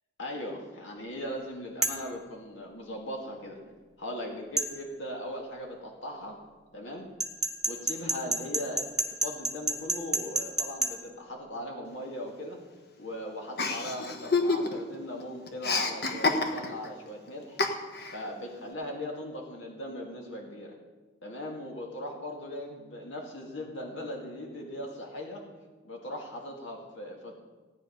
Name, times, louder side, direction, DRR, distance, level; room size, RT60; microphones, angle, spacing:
voice 1, 0.2-6.4 6.7-7.1 7.7-12.6 13.0-17.6 18.1-20.8 21.2-25.4 25.8-27.3, left 1 dB, 85° left, 0 dB, 2.2 m, -39 dB
sound 1, 1.8-2.1 4.6-4.7 7.2-10.9, right 3 dB, 5° right, 1.1 m, -28 dB
Chuckle chortle, 13.6-15.0 15.2-16.9 17.6-18.2, left 3 dB, 55° left, 1.3 m, -28 dB
16.5 x 9.2 x 5.2 m, 1.3 s
head